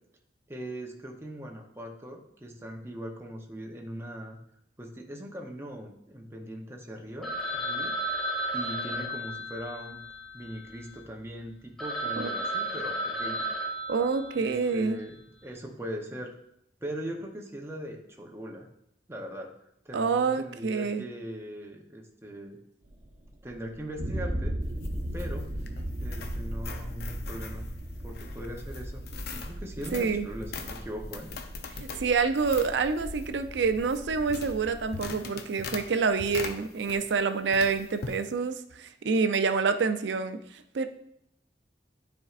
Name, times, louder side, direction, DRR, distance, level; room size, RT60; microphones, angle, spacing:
voice 1, 0.5-4.4 4.8-8.0 8.5-10.0 10.3-13.5 14.3-16.3 16.8-18.7 19.1-19.6 19.8-22.6 23.4-24.6 25.1-25.5 26.0-27.7 28.0-29.0 29.3-31.3, equal, 15° right, 1 dB, 0.7 m, -40 dB
Telephone, 7.2-11.0 11.5-11.6 11.8-14.7, right 1 dB, 5° left, 1.6 m, -33 dB
voice 2, 13.9-15.0 19.9-21.0 29.9-30.3 31.9-40.9, right 5 dB, 90° right, 9 dB, 0.5 m, -27 dB
sound 1, 22.9-35.0, right 1 dB, 45° right, 0.9 m, -37 dB
sound 2, 24.6-37.2 37.5-38.2, left 4 dB, 60° left, 0.6 m, -42 dB
9.7 x 4.4 x 2.4 m, 0.73 s
head